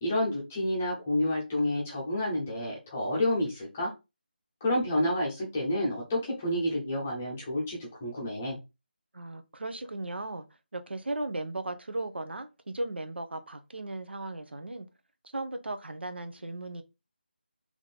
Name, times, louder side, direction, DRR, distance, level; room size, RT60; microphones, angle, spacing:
voice 1, 0.0-3.9 4.6-8.6, left 1 dB, 10° left, 0.7 m, -29 dB
voice 2, 9.1-10.5 10.7-14.9 15.3-16.8, right 2 dB, 80° right, 1.0 m, -36 dB
3.6 x 3.1 x 4.2 m
figure-of-eight pair, 180°, 6 cm